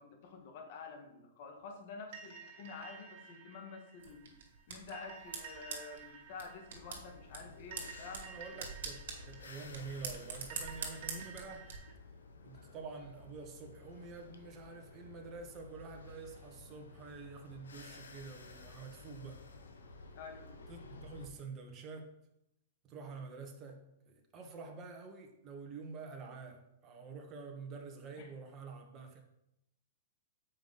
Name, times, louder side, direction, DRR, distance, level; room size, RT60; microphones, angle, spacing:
voice 1, 0.0-4.3 4.7-8.3 20.1-20.6 28.2-28.3, left 4 dB, 55° left, 3 dB, 1.5 m, -49 dB
sound 1, 2.1-11.9, right 6 dB, 55° right, 2.2 m, -53 dB
sound 2, 4.0-11.8, right 5 dB, 70° right, 2.4 m, -46 dB
sound 3, 6.7-21.3, left 3 dB, 90° left, 1.0 m, -54 dB
voice 2, 8.1-11.7 12.4-19.4 20.7-22.1 22.8-29.2, right 4 dB, 30° right, 3 dB, 1.4 m, -48 dB
7.3 x 5.2 x 4.0 m, 0.84 s
hypercardioid pair, 125°, 0 cm